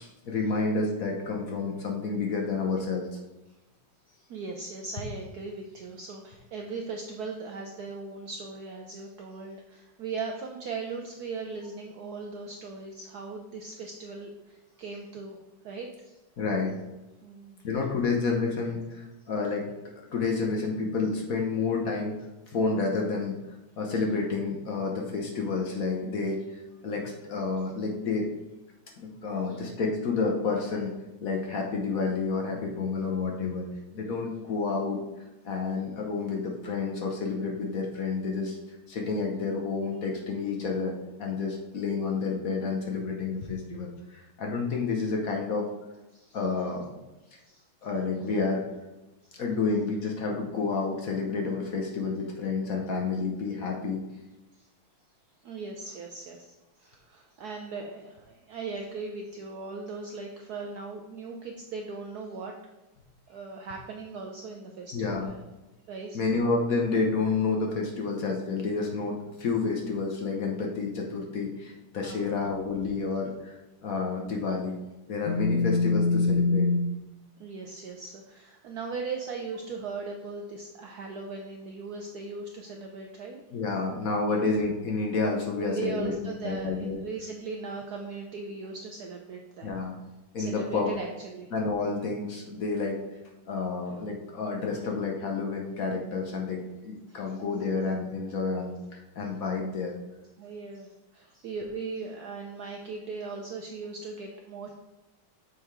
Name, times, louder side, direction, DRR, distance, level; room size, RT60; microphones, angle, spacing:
voice 1, 0.0-3.2 16.4-16.8 17.6-19.7 20.1-22.2 22.5-23.4 23.8-28.3 29.0-30.9 31.2-33.7 33.9-35.0 35.4-38.6 38.9-40.9 41.2-45.7 46.3-46.9 47.3-47.4 47.8-48.6 49.3-54.0 64.9-65.3 66.1-73.6 73.8-74.8 75.1-76.9 83.5-86.1 86.4-87.0 89.6-90.0 90.3-90.9 91.5-93.0 93.4-99.9, left 4 dB, 60° left, 1 dB, 1.0 m, -29 dB
voice 2, 4.1-15.4 15.6-16.2 17.2-17.7 29.5-29.6 46.1-46.4 47.5-47.6 49.2-49.4 54.5-54.7 55.4-62.5 63.3-65.4 65.9-66.2 72.0-72.4 77.4-83.4 84.3-84.5 85.6-89.7 90.4-91.5 97.1-97.3 100.4-104.7, right 4 dB, 75° right, 2 dB, 0.9 m, -39 dB
6.5 x 3.6 x 4.6 m, 1.0 s
omnidirectional pair, 2.2 m